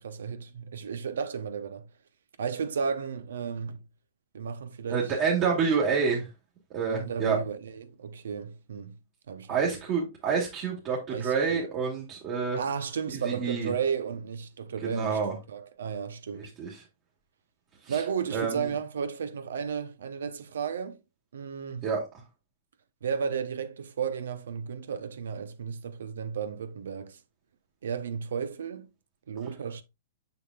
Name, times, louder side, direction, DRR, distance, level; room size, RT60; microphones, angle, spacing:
voice 1, 0.0-1.9 2.4-3.8 4.3-5.1 6.9-9.0 9.3-9.8 11.1-11.7 12.6-15.2 15.5-16.5 17.9-21.0 21.3-21.9 23.0-27.2 27.8-28.9 29.3-29.8, right 6 dB, 80° right, 0.7 m, -33 dB
voice 2, 4.9-6.3 6.7-7.4 9.5-12.6 13.2-13.7 14.8-15.3 16.3-16.7 17.8-18.0 18.3-18.7 21.8-22.1, right 5 dB, 40° right, 2.1 m, -28 dB
6.8 x 6.1 x 2.3 m
hypercardioid pair, 130°, 0 cm